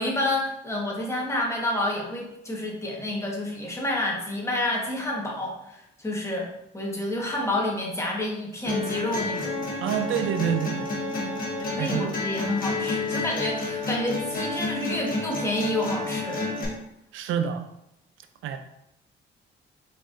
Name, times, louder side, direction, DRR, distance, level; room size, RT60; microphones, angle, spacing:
voice 1, 0.0-6.5 6.7-9.5 11.6-16.4, left 1 dB, 15° left, -2 dB, 1.2 m, -29 dB
sound 1, 8.7-16.6, left 2 dB, 45° left, 1.3 m, -30 dB
voice 2, 9.8-10.9 11.8-12.1 17.1-17.6 18.4-18.6, right 9 dB, 80° right, 7 dB, 0.5 m, -27 dB
4.3 x 4.1 x 2.5 m, 0.81 s
cardioid pair, 90°, 20 cm